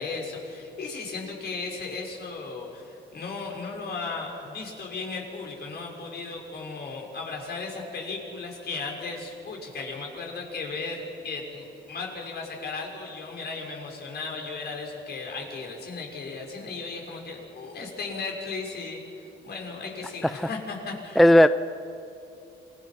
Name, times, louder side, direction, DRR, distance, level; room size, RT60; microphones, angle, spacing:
voice 1, 0.0-21.2, left 4 dB, 55° left, 0 dB, 5.9 m, -36 dB
voice 2, 21.2-21.5, left 1 dB, ahead, 12 dB, 0.5 m, -16 dB
27.5 x 22.0 x 6.0 m, 2.7 s
cardioid pair, 90°, 20 cm